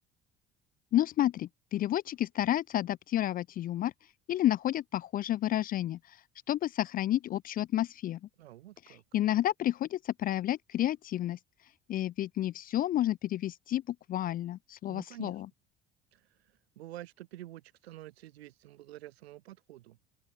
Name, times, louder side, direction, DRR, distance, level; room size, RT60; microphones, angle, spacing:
voice 1, 0.9-3.9 4.3-6.0 6.5-8.2 8.9-11.4 11.9-15.5, left 13 dB, 30° left, 0.4 m, -30 dB
voice 2, 8.4-9.0 14.9-15.4 16.1-16.2 16.8-20.0, right 15 dB, 75° right, 0.5 m, -48 dB
figure-of-eight pair, 55°, 32 cm